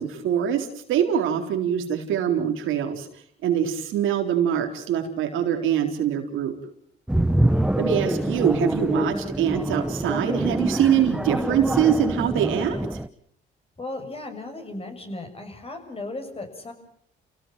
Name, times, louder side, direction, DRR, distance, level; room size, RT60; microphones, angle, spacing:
voice 1, 0.0-3.1 3.4-6.6 7.8-12.8, right 9 dB, 90° right, 4 dB, 4.0 m, -24 dB
sound 1, 7.1-13.1, right 1 dB, 5° right, 1.0 m, -25 dB
voice 2, 7.4-7.7 13.8-16.7, left 2 dB, 30° left, 6 dB, 6.9 m, -36 dB
29.5 x 17.5 x 7.6 m, 0.66 s
cardioid pair, 90°, 20 cm